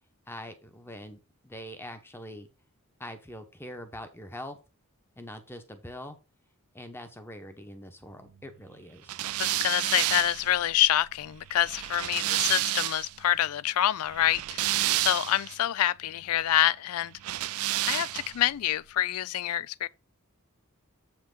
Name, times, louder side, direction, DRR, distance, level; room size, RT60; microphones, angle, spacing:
voice 1, 0.3-2.5 3.0-4.6 5.2-6.2 6.7-9.2, left 1 dB, 10° left, 1.0 m, -43 dB
sound 1, 9.1-13.2 14.1-15.5 17.2-18.5, right 16 dB, 70° right, 0.4 m, -30 dB
voice 2, 9.4-17.5 17.9-19.9, left 12 dB, 75° left, 0.4 m, -27 dB
7.9 x 5.8 x 3.9 m
head